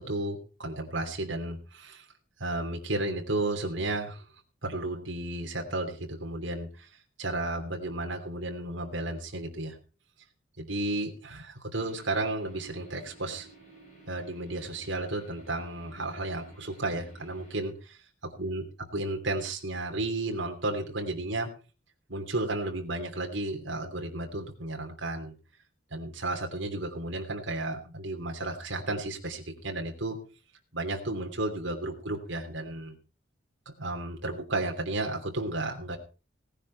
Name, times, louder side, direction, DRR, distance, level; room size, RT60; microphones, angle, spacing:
voice 1, 0.0-2.0 2.4-4.2 4.6-6.9 7.2-9.8 10.6-13.5 14.1-18.0 18.4-18.7 18.9-21.5 22.1-25.3 25.9-30.2 30.7-32.9 33.7-36.0, right 2 dB, 70° right, 2 dB, 3.0 m, -33 dB
sound 1, 11.7-17.6, right 2 dB, 40° left, 7.7 m, -54 dB
17.5 x 10.0 x 4.6 m, 0.35 s
head